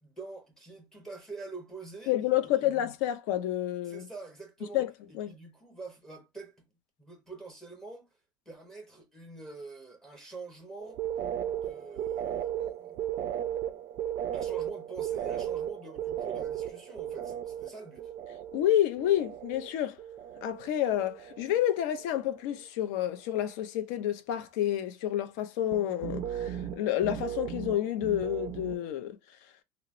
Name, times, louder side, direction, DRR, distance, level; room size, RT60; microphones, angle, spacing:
voice 1, 0.0-2.2 2.4-2.7 3.8-6.6 7.0-8.1 8.5-11.0 11.6-13.1 14.3-18.1, right 3 dB, 5° left, 0.7 m, -46 dB
voice 2, 2.1-4.1 4.7-4.9 5.1-5.3 18.5-20.0 20.4-29.2, left 12 dB, 65° left, 0.5 m, -29 dB
sound 1, 10.8-19.7 20.0-20.7 21.0-21.7 22.0-22.4 25.7-28.9, right 10 dB, 35° right, 0.3 m, -36 dB
2.9 x 2.0 x 2.4 m
cardioid pair, 175°, 10 cm